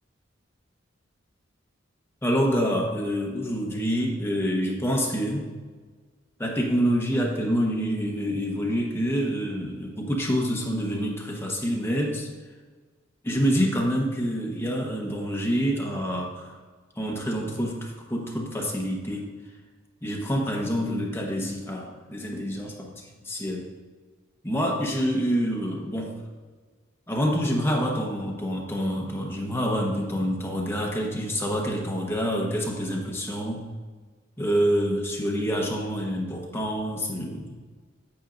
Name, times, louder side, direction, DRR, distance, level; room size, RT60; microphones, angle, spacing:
voice 1, 2.2-5.5 6.4-12.3 13.2-16.5 17.0-19.3 20.0-22.9 23.2-23.6 24.4-26.1 27.1-33.6 34.4-37.6, equal, 15° left, -1 dB, 1.2 m, -27 dB
8.8 x 8.6 x 2.6 m, 1.4 s
head